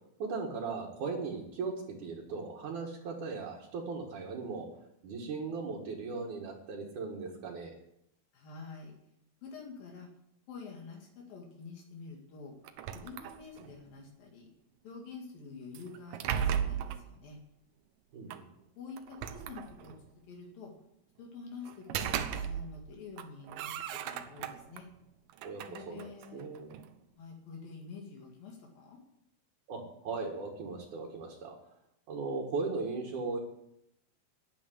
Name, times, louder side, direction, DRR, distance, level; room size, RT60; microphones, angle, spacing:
voice 1, 0.2-4.7 5.0-7.7 18.1-18.5 25.4-26.1 26.3-26.7 29.7-31.6 32.1-33.4, right 4 dB, 60° right, -2 dB, 3.3 m, -38 dB
voice 2, 8.3-8.9 9.4-10.1 10.5-12.5 12.9-14.5 14.8-17.4 18.8-20.7 21.2-24.9 25.7-26.5 27.2-29.0, left 4 dB, 75° left, 0 dB, 3.9 m, -47 dB
sound 1, 12.7-13.8 15.8-17.1 18.3-18.4 19.0-20.1 21.7-22.9 23.2-24.8 25.3-26.9, right 8 dB, 80° right, 2.5 m, -36 dB
11.5 x 9.4 x 9.6 m, 0.79 s
omnidirectional pair, 4.1 m